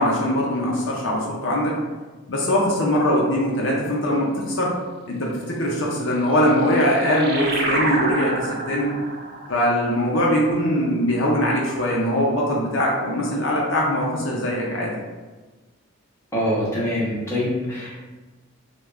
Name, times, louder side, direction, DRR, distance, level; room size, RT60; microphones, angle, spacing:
voice 1, 0.0-1.7 2.3-4.7 5.1-8.9 9.5-14.9, equal, 55° left, -3 dB, 0.5 m, -21 dB
Weird Spaceship, 6.3-11.3, right 2 dB, 45° right, 0.4 m, -29 dB
voice 2, 16.3-17.9, equal, 10° left, -7 dB, 0.8 m, -24 dB
3.5 x 2.3 x 3.1 m, 1.3 s
head